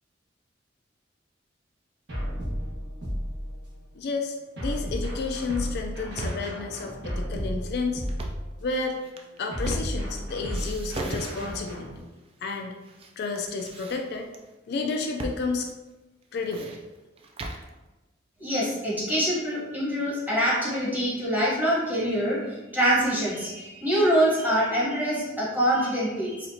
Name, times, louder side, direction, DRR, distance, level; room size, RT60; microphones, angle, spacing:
sound 1, 2.1-3.8 4.6-8.7 9.5-12.0, equal, 60° right, 1.2 m, -33 dB
voice 1, 3.9-8.0 8.6-9.0 9.4-12.0 12.4-12.7 13.2-14.3 14.7-15.7 16.3-16.7, left 4 dB, 60° left, 3 dB, 0.3 m, -31 dB
sound 2, 5.8-6.6 8.0-8.5 9.0-10.2 10.5-11.8 12.5-13.1 13.3-14.4 15.2-15.4 15.7-15.8 16.2-17.7, right 2 dB, 30° right, 0.3 m, -36 dB
voice 2, 18.4-26.5, equal, 10° right, -7 dB, 1.1 m, -25 dB
4.2 x 2.4 x 2.7 m, 1.1 s
head